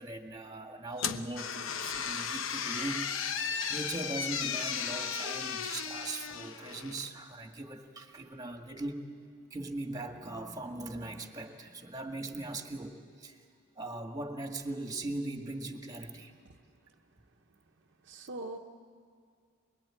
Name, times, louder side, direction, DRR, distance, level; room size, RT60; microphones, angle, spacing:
voice 1, 0.0-9.0 9.5-13.4 13.8-16.3, right 2 dB, 20° right, 4 dB, 1.8 m, -40 dB
sound 1, 1.0-7.1, left 7 dB, 70° left, 0.9 m, -35 dB
voice 2, 18.0-18.6, right 2 dB, 60° right, 2 dB, 0.9 m, -42 dB
24.5 x 22.0 x 8.8 m, 2.1 s
head